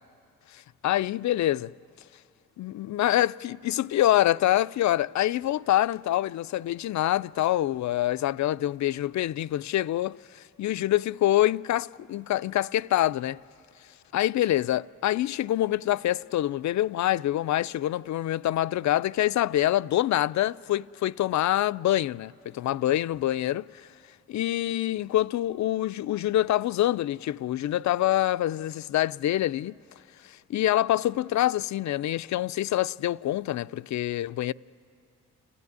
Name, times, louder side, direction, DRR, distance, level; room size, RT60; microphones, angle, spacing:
voice 1, 0.5-1.7 2.6-13.4 14.1-23.9 24.3-29.8 30.2-34.5, left 13 dB, 60° left, 0.4 m, -26 dB
29.5 x 14.0 x 9.6 m
supercardioid pair, 55°, 34 cm